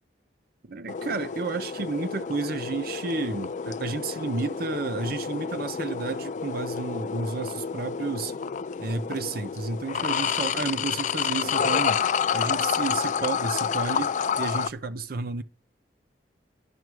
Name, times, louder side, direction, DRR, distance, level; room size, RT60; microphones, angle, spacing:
voice 1, 0.6-8.3 8.8-12.0 12.3-15.4, right 4 dB, 55° right, 0.6 m, -31 dB
sound 1, 0.9-14.7, left 7 dB, 45° left, 0.3 m, -29 dB
11.0 x 6.1 x 4.7 m
head